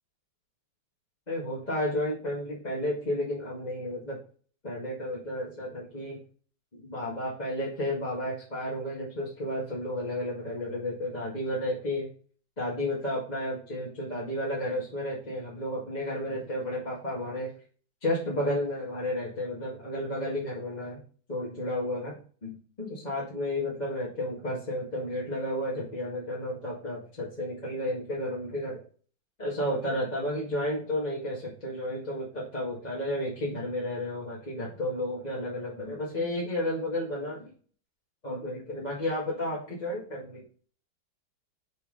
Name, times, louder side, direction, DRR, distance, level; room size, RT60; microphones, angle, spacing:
voice 1, 1.3-4.2 4.6-6.2 6.7-12.1 12.6-17.5 18.0-21.0 21.3-22.2 22.4-28.8 29.4-37.5 38.2-40.4, left 1 dB, 20° left, -6 dB, 1.9 m, -32 dB
6.4 x 5.7 x 3.9 m, 0.42 s
omnidirectional pair, 2.4 m